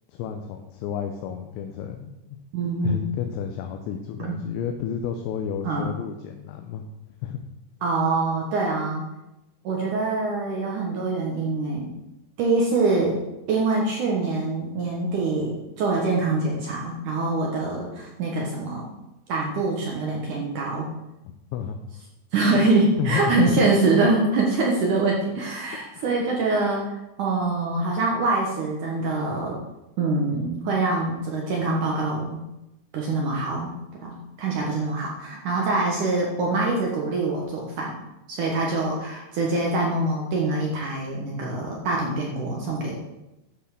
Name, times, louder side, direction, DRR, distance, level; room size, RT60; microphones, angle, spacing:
voice 1, 0.1-2.4 2.8-6.8 7.2-7.4 21.5-21.8 22.5-22.6 23.0-23.4 25.9-26.2, left 8 dB, 80° left, 5 dB, 2.9 m, -31 dB
voice 2, 2.5-3.0 4.2-4.4 5.6-5.9 7.8-9.0 9.6-11.9 12.4-13.2 13.5-18.8 19.3-20.9 22.3-26.9 27.2-29.6 30.0-32.4 32.9-33.7 34.0-37.9 38.3-43.0, right 3 dB, 70° right, -1 dB, 1.9 m, -24 dB
10.5 x 5.5 x 6.5 m, 0.95 s
omnidirectional pair, 5.4 m